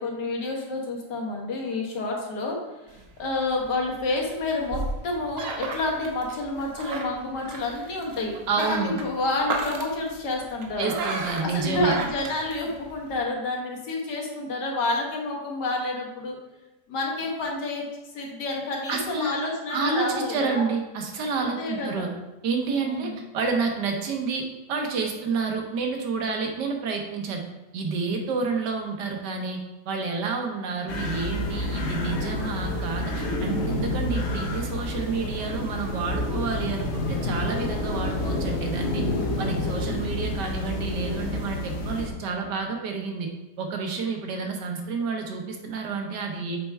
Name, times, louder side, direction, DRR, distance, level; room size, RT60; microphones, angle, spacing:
voice 1, 0.0-2.6 2.9-10.9 11.4-16.4 16.9-17.9 18.1-20.6 21.4-22.1 22.7-23.2, left 2 dB, 90° left, 0 dB, 1.9 m, -29 dB
sound 1, 2.9-13.2, right 3 dB, 60° right, 1.1 m, -35 dB
voice 2, 8.5-8.9 10.8-11.9 18.9-19.4 19.7-22.1 22.4-24.4 24.7-27.4 27.7-39.0 39.4-43.3 43.6-46.6, right 4 dB, 85° right, 3 dB, 1.6 m, -29 dB
sound 2, 30.9-42.1, left 1 dB, 45° left, 1.1 m, -29 dB
7.4 x 4.4 x 3.4 m, 1.1 s
omnidirectional pair, 1.8 m